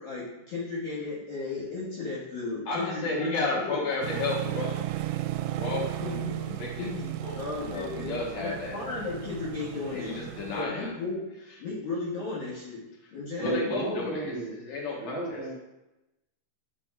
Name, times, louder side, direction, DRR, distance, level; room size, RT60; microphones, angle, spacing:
voice 1, 0.0-3.8 6.0-6.3 6.7-7.1 7.3-10.2 10.6-11.2 11.6-12.9 13.1-13.6, left 3 dB, 55° left, -9 dB, 3.1 m, -35 dB
voice 2, 2.7-4.8 5.5-6.2 6.4-8.8 9.9-10.9 13.3-15.4, left 3 dB, 80° left, -4 dB, 1.5 m, -33 dB
sound 1, 4.0-10.6, right 14 dB, 85° right, 3.0 m, -35 dB
voice 3, 13.4-14.5 15.0-15.5, right 1 dB, 65° right, -8 dB, 0.8 m, -32 dB
13.0 x 5.7 x 2.5 m, 0.97 s
omnidirectional pair, 5.6 m